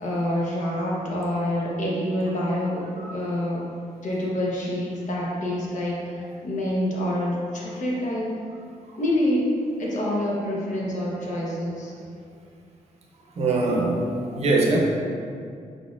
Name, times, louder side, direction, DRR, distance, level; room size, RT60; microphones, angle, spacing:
voice 1, 0.0-2.9 3.1-3.6 4.0-8.3 9.0-9.5 9.8-11.9, left 1 dB, 60° left, -4 dB, 1.0 m, -27 dB
voice 2, 13.4-14.8, right 2 dB, 50° right, -1 dB, 0.6 m, -22 dB
5.0 x 4.1 x 2.4 m, 2.3 s
wide cardioid pair, 170°, 14 cm